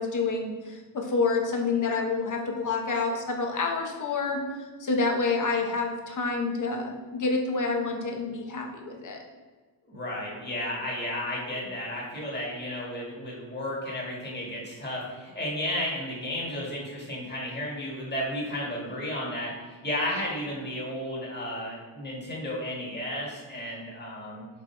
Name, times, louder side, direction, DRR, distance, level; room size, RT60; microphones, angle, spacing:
voice 1, 0.0-4.4 4.8-9.2, left 4 dB, 45° left, 1 dB, 1.1 m, -28 dB
voice 2, 9.9-24.4, left 1 dB, 25° left, -4 dB, 2.1 m, -33 dB
6.6 x 4.8 x 4.6 m, 1.4 s
wide cardioid pair, 175°, 44 cm